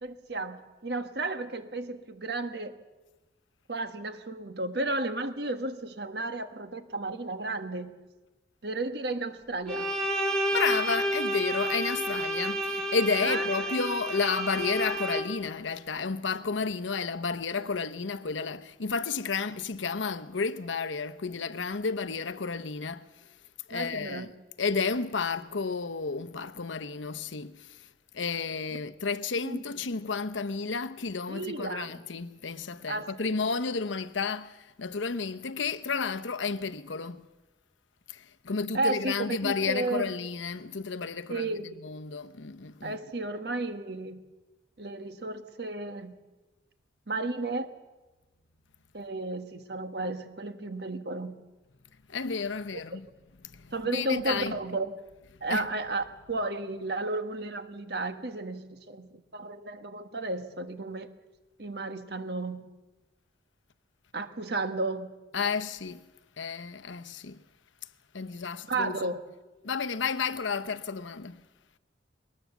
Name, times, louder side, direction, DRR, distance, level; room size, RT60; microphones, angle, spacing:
voice 1, 0.0-2.8 3.7-8.0 8.6-9.9 13.2-13.7 23.7-24.3 29.4-29.6 31.3-31.9 32.9-33.4 38.7-40.1 41.3-41.8 42.8-44.2 44.8-46.2 47.1-47.7 48.9-51.5 52.7-53.0 53.7-54.9 55.4-61.1 61.6-62.8 64.1-65.1 68.7-69.2, right 2 dB, 60° right, 1.4 m, -33 dB
Bowed string instrument, 9.7-15.5, right 1 dB, 5° left, 1.9 m, -30 dB
voice 2, 10.5-23.1 23.7-24.3 24.6-27.9 28.1-37.2 38.1-43.0 52.1-53.1 53.4-54.6 55.5-55.7 65.3-66.1 66.4-67.4 68.1-69.0 69.6-71.4, left 5 dB, 85° left, 0.8 m, -32 dB
22.0 x 19.0 x 7.1 m
head